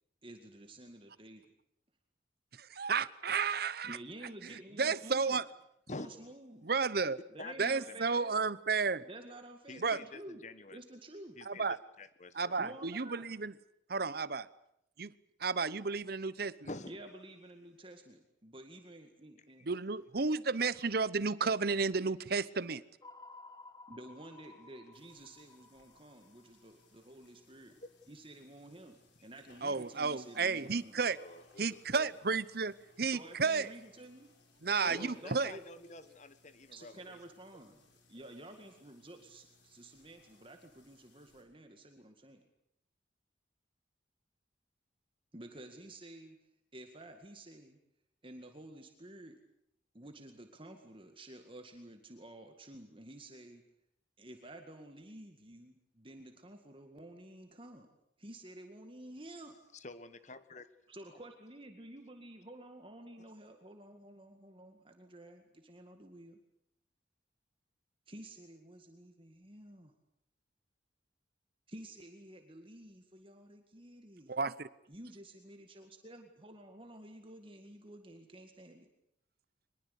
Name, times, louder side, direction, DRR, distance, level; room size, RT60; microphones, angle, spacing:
voice 1, 0.2-1.4 3.8-5.4 6.0-6.7 7.3-8.3 9.0-10.4 10.7-11.4 12.6-13.3 16.9-19.7 23.9-27.8 28.1-31.0 33.1-34.3 34.7-35.6 36.7-37.8 38.1-42.5 45.3-46.4 46.7-47.8 48.2-49.4 49.9-53.6 54.2-57.9 58.2-59.6 60.9-66.4 68.1-69.9 71.7-74.3 74.9-78.9, right 1 dB, 30° right, 5 dB, 2.0 m, -51 dB
voice 2, 2.5-4.0 4.4-5.4 6.6-7.2 7.6-9.0 9.8-10.0 11.5-11.8 12.3-13.5 13.9-14.5 15.0-15.1 15.4-16.7 19.6-22.8 29.6-31.2 31.6-33.7 34.6-35.5 74.3-74.7, right 4 dB, 55° right, 17 dB, 0.9 m, -32 dB
voice 3, 5.9-6.3 7.4-8.0 9.7-10.8 11.4-12.6 16.6-16.9 27.8-27.9 31.1-32.1 34.9-37.2 38.2-38.3 59.7-60.7 63.2-63.3, left 2 dB, 40° left, 13 dB, 1.4 m, -48 dB
sound 1, 23.0-27.3, left 3 dB, 20° left, 1.2 m, -56 dB
sound 2, 24.9-41.4, left 3 dB, 75° left, 6.1 m, -67 dB
23.5 x 21.5 x 8.4 m, 0.76 s
head